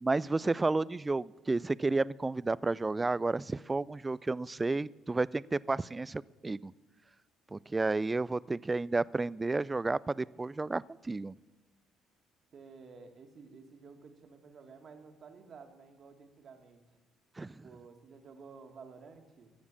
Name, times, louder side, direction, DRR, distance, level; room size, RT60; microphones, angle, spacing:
voice 1, 0.0-6.7 7.5-11.3 17.4-17.6, right 3 dB, 25° right, 22 dB, 0.3 m, -31 dB
voice 2, 12.5-16.8 17.5-19.5, right 5 dB, 55° right, 5 dB, 1.9 m, -53 dB
13.5 x 7.3 x 8.5 m, 1.2 s
hypercardioid pair, 60°, 0 cm